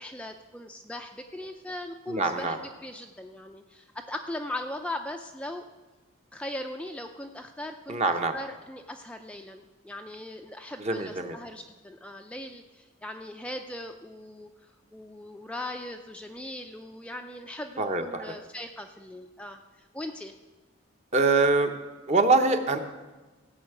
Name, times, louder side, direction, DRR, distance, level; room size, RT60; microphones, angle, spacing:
voice 1, 0.0-5.6 6.3-20.3, left 1 dB, 5° left, 4 dB, 0.4 m, -39 dB
voice 2, 2.1-2.6 7.9-8.3 10.8-11.4 17.8-18.3 21.1-21.7 22.1-22.8, right 3 dB, 35° right, 6 dB, 0.9 m, -24 dB
16.5 x 5.6 x 8.0 m, 1.2 s
head